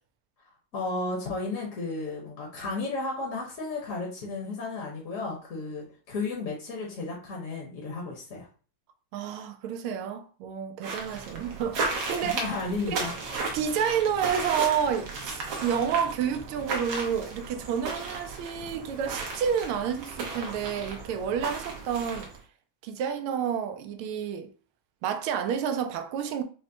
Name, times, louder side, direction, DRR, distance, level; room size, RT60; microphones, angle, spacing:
voice 1, 0.7-8.5 12.3-13.1, left 3 dB, 50° left, 1.1 m, -33 dB
voice 2, 9.1-12.4 12.9-13.1 13.5-22.3 22.8-24.5 25.0-26.4, right 8 dB, 90° right, 1.4 m, -29 dB
sound 1, 10.8-22.4, right 3 dB, 70° right, 1.7 m, -35 dB
5.5 x 2.1 x 2.7 m
omnidirectional pair, 2.3 m